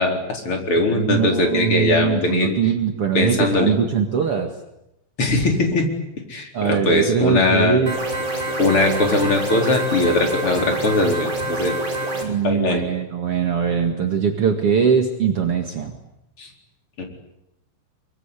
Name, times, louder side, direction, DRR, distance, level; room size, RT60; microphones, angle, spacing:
voice 1, 0.0-2.6 3.1-3.7 5.2-5.9 6.3-7.8 8.6-11.7 12.4-12.8 16.4-16.5 17.0-17.1, left 2 dB, 30° left, 3 dB, 4.4 m, -20 dB
voice 2, 0.8-4.5 6.5-8.0 12.2-15.9, right 7 dB, 70° right, 5 dB, 1.3 m, -21 dB
sound 1, 7.9-12.2, right 2 dB, 15° right, 5.6 m, -26 dB
24.0 x 23.5 x 9.9 m, 0.83 s
omnidirectional pair, 5.8 m